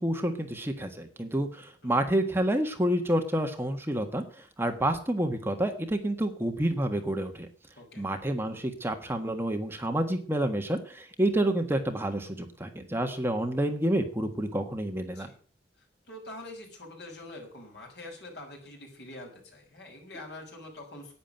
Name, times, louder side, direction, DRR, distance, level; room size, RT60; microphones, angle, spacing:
voice 1, 0.0-7.5 8.0-15.3, right 1 dB, 15° right, 5 dB, 1.5 m, -29 dB
voice 2, 1.8-2.1 7.8-8.1 15.1-15.4 16.1-21.2, left 1 dB, 70° left, 1 dB, 6.3 m, -45 dB
11.5 x 9.7 x 8.9 m, 0.43 s
head